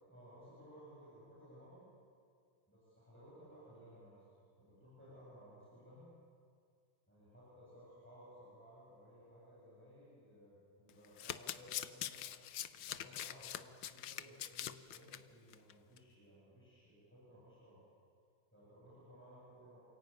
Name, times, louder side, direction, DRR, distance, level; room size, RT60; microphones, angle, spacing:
voice 1, 0.1-1.9 2.7-4.2 4.6-6.2 7.1-12.3 12.8-17.8 18.5-19.8, equal, 5° left, -8 dB, 7.9 m, -58 dB
Domestic sounds home sounds, 10.9-15.2 15.5-15.7 16.0-16.1, left 11 dB, 70° left, 1.4 m, -43 dB
28.5 x 16.0 x 9.2 m, 2.1 s
omnidirectional pair, 2.3 m